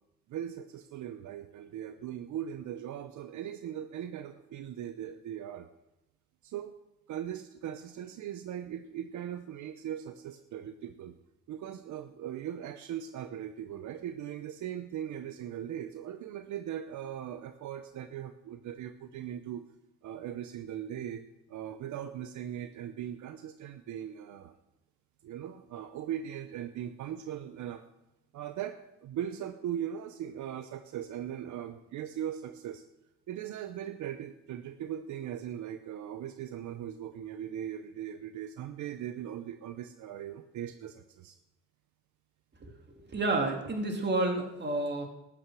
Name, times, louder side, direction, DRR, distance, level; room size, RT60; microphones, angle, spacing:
voice 1, 0.3-5.7 6.4-6.7 7.1-11.2 11.5-19.6 20.0-24.5 25.2-27.8 28.3-32.8 33.3-41.4, right 10 dB, 75° right, 9 dB, 0.8 m, -39 dB
voice 2, 43.1-45.1, right 2 dB, 35° right, 3 dB, 2.7 m, -30 dB
12.5 x 10.0 x 6.2 m, 0.91 s
cardioid pair, 90°, 30 cm